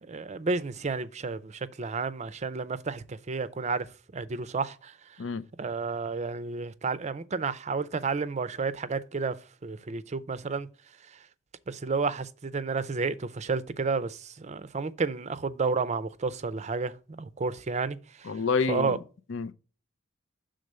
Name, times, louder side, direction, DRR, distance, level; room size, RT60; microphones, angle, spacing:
voice 1, 0.0-3.9 4.1-4.9 5.6-9.3 9.6-10.7 11.7-18.3 18.7-19.0, right 4 dB, 35° right, 0.5 m, -31 dB
voice 2, 18.2-19.0 19.3-19.5, left 5 dB, 70° left, 0.5 m, -28 dB
6.7 x 3.8 x 6.2 m
head